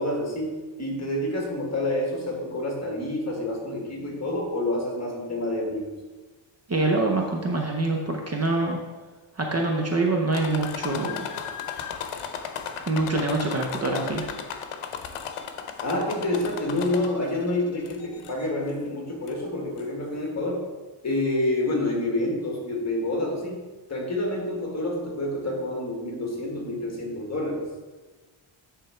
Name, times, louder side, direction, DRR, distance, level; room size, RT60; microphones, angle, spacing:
voice 1, 0.0-5.9 15.8-20.6 21.0-23.6 23.9-27.6, left 1 dB, 30° left, 0 dB, 1.6 m, -28 dB
voice 2, 6.7-8.8 9.4-11.3 12.9-14.3, right 2 dB, 30° right, 1 dB, 0.7 m, -25 dB
sound 1, 10.3-17.4 17.9-18.5 19.3-19.4 19.8-19.9, left 7 dB, 85° left, 0.8 m, -35 dB
9.7 x 3.6 x 4.4 m, 1.3 s
wide cardioid pair, 135°, 50 cm